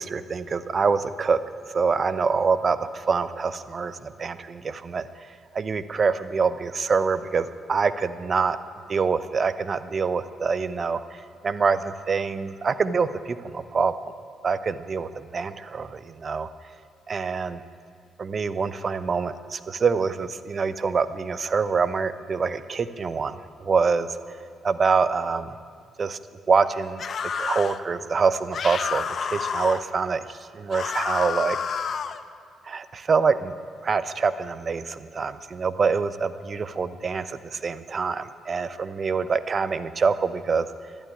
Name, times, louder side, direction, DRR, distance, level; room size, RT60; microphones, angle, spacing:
voice 1, 0.0-1.4 1.7-5.1 5.5-8.6 8.9-11.0 11.4-14.1 14.4-16.5 17.1-17.6 18.2-24.1 24.6-25.5 26.0-26.2 26.5-27.0 27.4-31.6 32.7-33.5 33.8-40.7, right 5 dB, 40° right, 13 dB, 0.8 m, -25 dB
sound 1, 27.0-27.8 28.5-29.8 30.7-32.2, left 6 dB, 50° left, 0.7 m, -29 dB
12.5 x 11.5 x 9.9 m, 2.1 s
cardioid pair, 90°, 0 cm